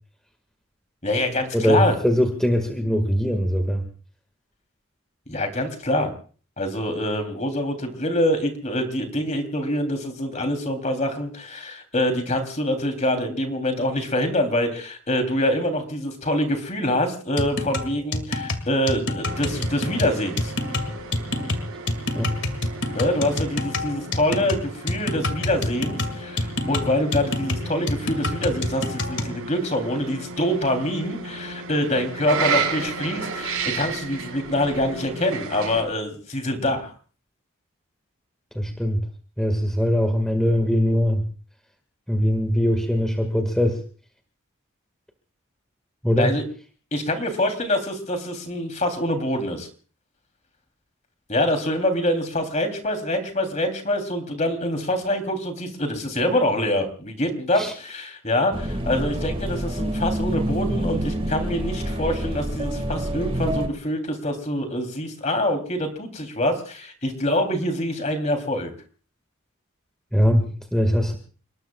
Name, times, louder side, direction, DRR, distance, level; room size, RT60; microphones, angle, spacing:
voice 1, 1.0-1.9 5.3-6.1 6.6-20.5 22.9-36.9 46.2-46.4 46.9-49.7 51.3-68.7, left 1 dB, 35° left, 6 dB, 3.2 m, -25 dB
voice 2, 1.5-3.9 22.1-22.3 38.5-39.0 39.4-41.2 42.1-43.8 46.0-46.4 57.6-57.7 70.1-71.2, equal, 5° left, 4 dB, 1.8 m, -21 dB
sound 1, 17.4-29.4, left 2 dB, 55° left, 2.0 m, -27 dB
sound 2, 19.2-35.8, right 5 dB, 90° right, 5.0 m, -33 dB
sound 3, 58.5-63.7, right 1 dB, 25° right, 1.8 m, -27 dB
30.0 x 19.5 x 2.4 m, 0.40 s
head